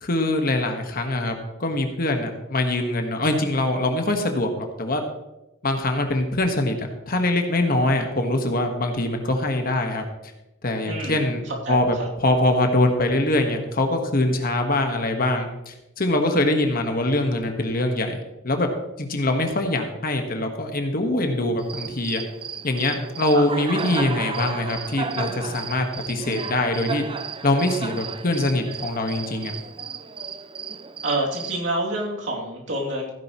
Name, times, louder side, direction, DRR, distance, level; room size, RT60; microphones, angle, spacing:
voice 1, 0.0-1.3 1.6-5.0 5.6-10.0 10.6-12.0 12.2-18.2 18.4-18.7 19.0-22.2 22.6-27.0 27.4-29.5, left 1 dB, 50° left, 4 dB, 1.5 m, -23 dB
voice 2, 10.9-11.3 11.7-11.8 23.3-23.4 31.0-33.1, right 1 dB, 70° right, -2 dB, 2.9 m, -27 dB
Cricket, 21.6-31.6, right 5 dB, 25° right, 0.5 m, -34 dB
15.5 x 10.5 x 3.1 m, 0.94 s
head